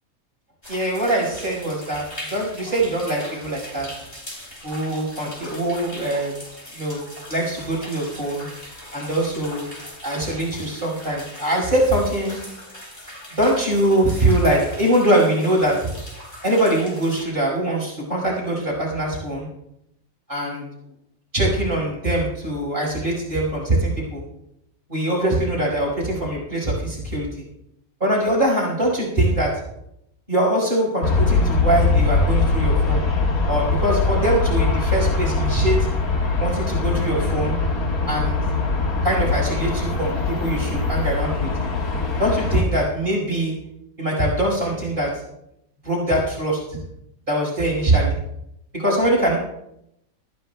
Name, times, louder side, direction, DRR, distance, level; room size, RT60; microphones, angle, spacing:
sound 1, 0.6-17.2, left 1 dB, 30° left, 3.6 m, -40 dB
voice 1, 0.7-2.0 2.3-3.9 4.6-6.3 6.7-7.0 7.3-8.5 8.9-9.7 10.0-12.4 13.3-15.9 16.4-19.5 20.3-20.7 21.3-24.2 24.9-27.4 28.0-29.5 30.3-33.0 33.5-35.9 36.4-37.6 38.1-38.4 39.0-41.5 42.2-43.6 44.0-45.2 45.8-46.8 47.3-48.2 48.7-49.4, right 1 dB, 35° right, -5 dB, 5.4 m, -22 dB
Aircraft, 31.0-42.6, left 3 dB, 85° left, 2.1 m, -22 dB
25.5 x 14.0 x 2.3 m, 0.82 s
omnidirectional pair, 1.5 m